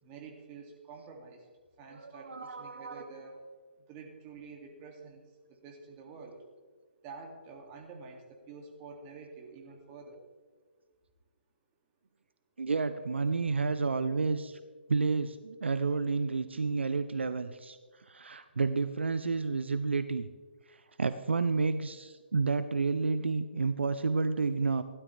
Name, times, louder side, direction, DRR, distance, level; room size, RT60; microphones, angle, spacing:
voice 1, 0.0-1.4 1.8-3.4 3.9-5.2 5.5-6.4 7.0-10.2, right 4 dB, 25° right, 1 dB, 2.2 m, -48 dB
voice 2, 1.9-3.1 12.6-14.6 14.9-17.8 18.1-20.3 20.7-24.8, right 4 dB, 75° right, 12 dB, 0.6 m, -30 dB
16.5 x 12.0 x 3.3 m, 1.5 s
figure-of-eight pair, 135°, 6 cm